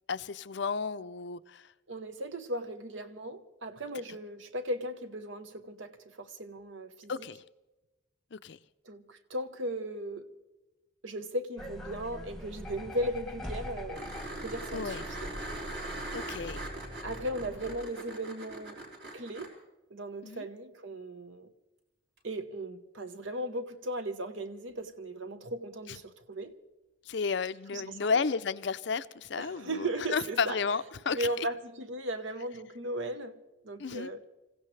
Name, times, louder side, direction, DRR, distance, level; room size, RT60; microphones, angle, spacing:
voice 1, 0.1-1.7 7.1-7.4 8.3-8.6 14.7-15.0 16.1-16.7 20.2-20.4 27.1-31.5 33.8-34.1, left 5 dB, 55° left, 0.5 m, -32 dB
voice 2, 1.9-7.1 8.8-10.3 11.0-15.3 17.0-18.8 19.1-19.5 19.9-21.5 22.2-26.6 27.7-28.1 29.4-30.6 31.1-34.2, right 1 dB, 70° right, 1.1 m, -37 dB
sound 1, 11.6-17.8, left 1 dB, ahead, 1.1 m, -43 dB
sound 2, 13.9-19.5 22.2-22.3, right 2 dB, 50° right, 3.9 m, -41 dB
26.5 x 16.0 x 3.3 m
head